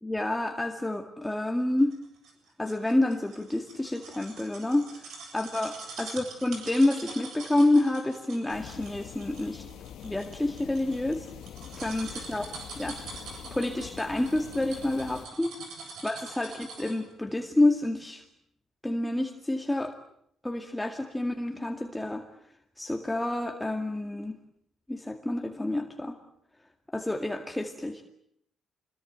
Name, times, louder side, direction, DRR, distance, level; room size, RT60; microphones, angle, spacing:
voice 1, 0.0-2.0 2.6-9.7 10.0-11.3 11.8-12.5 12.8-13.0 13.5-15.6 16.0-18.2 18.8-20.0 20.4-22.3 22.8-24.4 24.9-26.2 26.9-28.0, left 1 dB, 10° left, 4 dB, 2.1 m, -28 dB
sound 1, 1.9-17.1 17.5-17.6, right 4 dB, 75° right, 7.9 m, -44 dB
sound 2, 8.5-15.3, left 10 dB, 80° left, 1.3 m, -45 dB
26.0 x 21.5 x 9.1 m, 0.72 s
cardioid pair, 90°, 0 cm